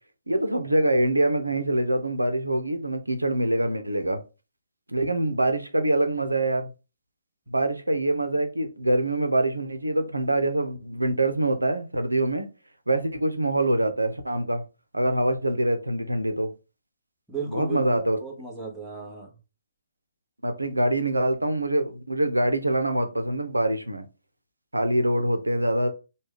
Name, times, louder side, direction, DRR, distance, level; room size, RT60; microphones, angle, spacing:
voice 1, 0.3-4.2 4.9-6.7 7.5-12.5 12.9-14.6 14.9-16.5 17.5-18.2 20.4-24.1 24.7-25.9, right 1 dB, 85° right, 0.6 m, -24 dB
voice 2, 17.3-19.3, right 4 dB, ahead, 1.0 m, -35 dB
3.2 x 2.3 x 3.5 m
figure-of-eight pair, 135°, 0 cm